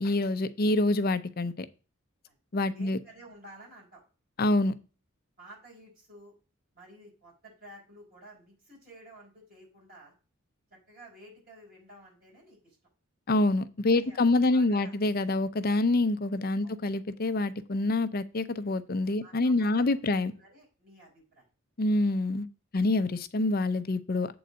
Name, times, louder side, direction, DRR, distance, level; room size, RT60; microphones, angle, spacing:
voice 1, 0.0-1.7 2.5-3.0 4.4-4.7 13.3-20.3 21.8-22.5 22.7-24.3, left 2 dB, 45° left, 0.6 m, -26 dB
voice 2, 2.7-4.0 5.4-6.4 6.7-10.1 10.7-12.8 13.9-15.0 16.6-16.8 19.2-21.5 21.9-22.0 22.7-22.9, right 1 dB, 45° right, 5.2 m, -52 dB
7.8 x 3.9 x 6.3 m
head